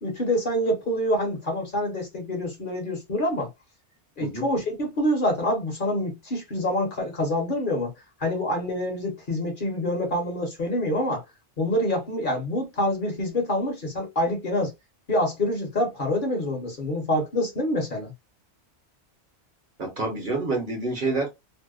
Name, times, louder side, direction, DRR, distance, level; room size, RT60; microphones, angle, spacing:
voice 1, 0.0-3.5 4.2-7.9 8.2-11.2 11.6-14.7 15.1-18.1, left 1 dB, 50° left, 1.0 m, -26 dB
voice 2, 19.8-21.3, right 3 dB, 50° right, 1.0 m, -27 dB
2.7 x 2.1 x 2.3 m
omnidirectional pair, 1.2 m